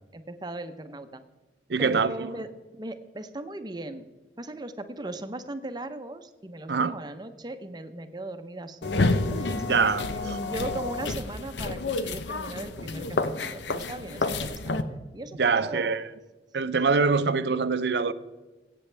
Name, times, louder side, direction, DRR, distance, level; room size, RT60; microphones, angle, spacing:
voice 1, 0.1-1.2 1.8-2.5 2.7-4.1 4.4-9.7 10.1-15.9, right 2 dB, 25° right, 0.7 m, -38 dB
voice 2, 1.7-2.3 6.7-6.9 9.7-10.4 15.4-16.0 16.5-18.1, right 4 dB, 70° right, 0.6 m, -24 dB
sound 1, 8.8-14.8, left 3 dB, 80° left, 0.8 m, -29 dB
21.5 x 8.6 x 3.4 m
head